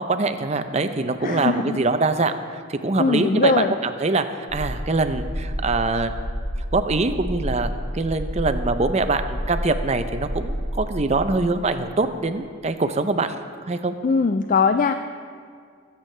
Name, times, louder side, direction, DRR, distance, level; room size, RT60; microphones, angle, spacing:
voice 1, 0.0-2.3 2.7-6.1 6.7-13.4 13.7-13.9, right 3 dB, 35° right, 9 dB, 0.5 m, -23 dB
voice 2, 1.2-1.8 3.0-3.8 14.0-14.9, left 4 dB, 40° left, 8 dB, 0.3 m, -20 dB
sound 1, 4.5-11.3, equal, 80° left, 3.3 m, -30 dB
19.5 x 8.2 x 3.3 m, 2.2 s
head